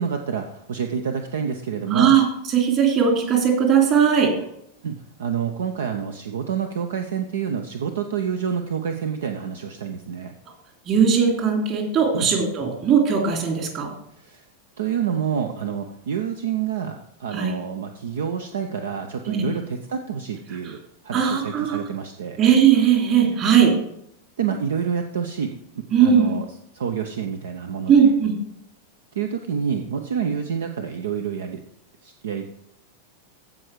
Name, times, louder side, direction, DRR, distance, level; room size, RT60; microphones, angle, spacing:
voice 1, 0.0-2.2 4.8-10.3 12.1-12.3 14.2-14.4 14.8-20.8 21.0-22.4 24.4-25.6 26.0-26.4 26.7-27.9 29.2-31.6 32.0-32.5, right 7 dB, 60° right, 6 dB, 0.7 m, -28 dB
voice 2, 1.9-4.3 10.9-13.9 17.3-17.6 19.3-19.4 20.6-20.8 21.1-21.8 22.4-23.7 25.9-26.3 27.9-28.3, right 7 dB, 35° right, 1 dB, 2.9 m, -18 dB
15.0 x 5.3 x 4.7 m, 0.75 s
figure-of-eight pair, 90°, 0 cm